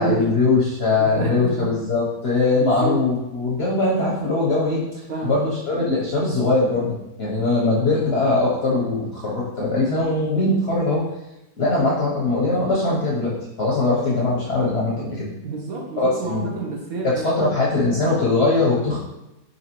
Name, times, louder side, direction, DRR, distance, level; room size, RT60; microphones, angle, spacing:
voice 1, 0.0-4.8 5.2-11.0 11.6-15.3 16.0-16.5 17.0-19.0, left 2 dB, 55° left, -6 dB, 0.7 m, -21 dB
voice 2, 1.0-1.7 2.5-3.0 5.1-5.4 15.4-17.6, right 3 dB, 65° right, -1 dB, 1.0 m, -29 dB
5.2 x 2.7 x 2.9 m, 0.94 s
omnidirectional pair, 1.8 m